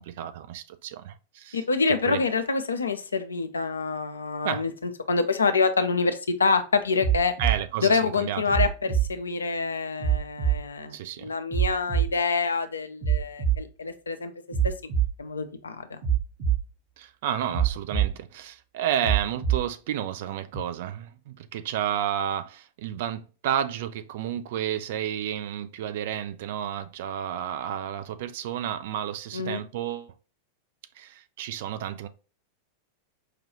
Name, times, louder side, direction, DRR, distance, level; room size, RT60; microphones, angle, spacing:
voice 1, 0.0-2.2 4.4-4.7 7.4-8.4 10.9-11.3 17.0-30.1 31.0-32.1, right 10 dB, 55° right, 0.4 m, -31 dB
voice 2, 1.5-7.3 7.8-14.3 14.6-14.9 15.2-16.0 29.3-29.6, left 4 dB, 75° left, 0.5 m, -26 dB
sound 1, 7.0-7.6 8.5-9.1 10.0-10.6 11.5-12.1 13.0-13.6 14.5-15.1 16.0-16.6 17.5-18.1 19.0-19.6 20.5-20.6, right 9 dB, 35° right, 1.0 m, -24 dB
4.9 x 2.3 x 2.9 m
figure-of-eight pair, 90°, 0 cm